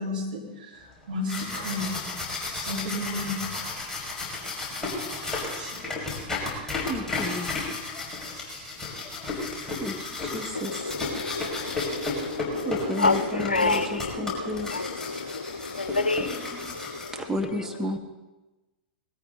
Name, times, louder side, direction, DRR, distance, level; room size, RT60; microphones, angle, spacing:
voice 1, 0.0-2.0 2.5-3.9 4.4-6.0 6.4-6.7 8.2-8.9, left 1 dB, 65° right, -3 dB, 4.6 m, -35 dB
sound 1, 1.0-17.5, left 3 dB, 10° left, 5.8 m, -33 dB
voice 2, 6.9-7.5 9.8-10.0 10.3-10.8 12.6-14.7 16.2-16.7 17.1-18.0, left 1 dB, 10° right, 3 dB, 1.2 m, -32 dB
voice 3, 10.5-16.4, left 3 dB, 85° left, 12 dB, 0.8 m, -29 dB
20.0 x 14.0 x 4.0 m, 1.1 s
figure-of-eight pair, 95°, 5 cm